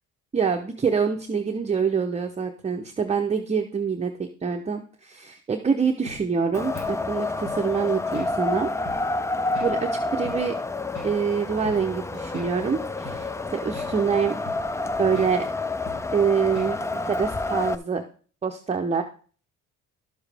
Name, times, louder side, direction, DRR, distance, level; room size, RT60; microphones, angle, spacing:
voice 1, 0.3-8.7 9.6-10.6 11.0-14.4 15.0-15.5 16.1-18.0 18.4-19.0, right 6 dB, 20° right, 3 dB, 0.7 m, -25 dB
sound 1, 6.1-6.2 6.7-6.9 7.5-7.6 8.1-8.3 8.9-9.0 9.6-9.7 10.2-10.4 11.0-11.1 11.6-11.8 12.3-12.5 13.0-13.2 13.7-13.9 14.5-14.7 15.1-15.3 15.9-16.0 16.6-16.8, left 2 dB, 75° left, 5.5 m, -40 dB
Wind, 6.5-17.8, left 2 dB, 10° left, 0.3 m, -29 dB
11.5 x 7.1 x 3.4 m, 0.41 s
cardioid pair, 120°, 30 cm